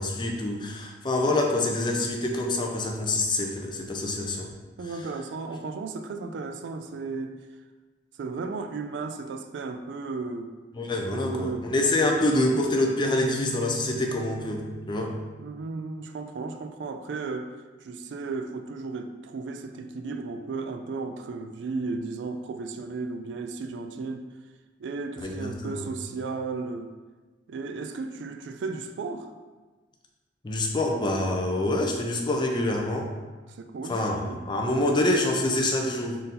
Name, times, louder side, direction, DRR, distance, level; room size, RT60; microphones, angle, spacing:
voice 1, 0.0-4.5 10.7-15.1 25.2-25.9 30.4-33.1 33.9-36.2, left 1 dB, 25° left, 1 dB, 0.5 m, -26 dB
voice 2, 4.8-7.4 8.2-10.5 11.1-11.7 12.3-12.7 15.4-17.5 17.8-24.3 24.8-26.9 27.5-29.3 33.5-34.5, right 4 dB, 75° right, 7 dB, 0.3 m, -34 dB
sound 1, 13.0-16.6, right 5 dB, 65° left, 0.8 m, -42 dB
3.8 x 2.6 x 4.1 m, 1.3 s
head